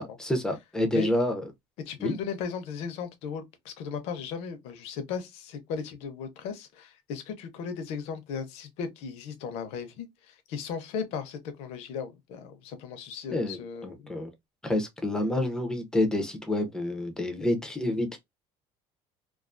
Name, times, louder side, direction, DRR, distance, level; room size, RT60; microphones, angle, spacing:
voice 1, 0.0-1.4 2.0-2.1 13.3-14.3 14.6-18.2, left 1 dB, 5° left, 0.4 m, -28 dB
voice 2, 1.9-14.1, left 6 dB, 65° left, 0.6 m, -36 dB
2.3 x 2.3 x 2.4 m
cardioid pair, 175°, 11 cm